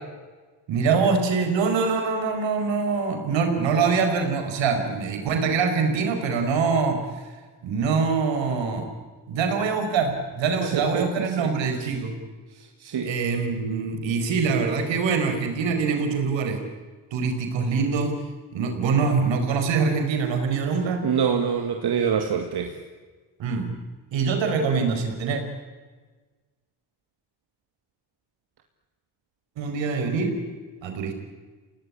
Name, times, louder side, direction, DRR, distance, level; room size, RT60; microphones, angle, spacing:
voice 1, 0.7-7.0 7.6-8.9 9.3-12.1 13.0-16.6 17.1-18.2 18.5-21.1 23.4-23.7 24.1-25.4 29.6-30.4 30.8-31.1, right 5 dB, 75° right, 5 dB, 5.0 m, -24 dB
voice 2, 10.6-11.5 12.5-13.1 21.0-22.8, right 7 dB, 60° right, 4 dB, 2.6 m, -26 dB
28.0 x 18.0 x 10.0 m, 1.4 s
hypercardioid pair, 50°, 45 cm